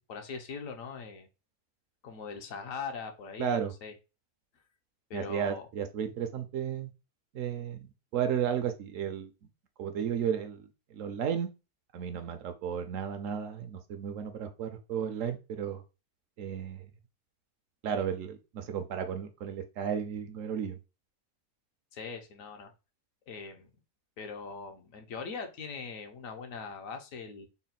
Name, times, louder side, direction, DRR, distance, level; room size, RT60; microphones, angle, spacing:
voice 1, 0.1-1.3 2.0-3.9 5.1-5.7 21.9-22.7 23.3-23.7 24.2-27.5, left 5 dB, 70° left, 1.1 m, -41 dB
voice 2, 3.4-3.7 5.1-6.9 7.3-9.3 9.8-10.7 10.9-11.5 11.9-15.8 16.4-16.8 17.8-20.8, right 8 dB, 70° right, 0.9 m, -33 dB
4.0 x 2.1 x 4.0 m
omnidirectional pair, 1.5 m